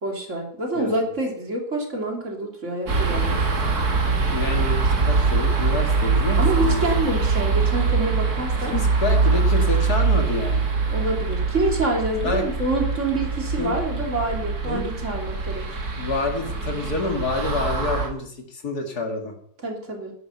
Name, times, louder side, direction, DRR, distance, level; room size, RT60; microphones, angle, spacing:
voice 1, 0.0-3.4 6.4-8.7 10.9-15.6 19.6-20.1, right 2 dB, 45° right, 1 dB, 3.3 m, -27 dB
sound 1, 2.9-18.1, right 4 dB, 70° right, 2.6 m, -23 dB
voice 2, 4.3-6.8 8.6-10.7 12.2-12.4 13.6-13.7 14.6-14.9 16.0-19.3, left 3 dB, 70° left, 3 dB, 2.7 m, -28 dB
11.5 x 11.0 x 5.6 m, 0.64 s
omnidirectional pair, 1.7 m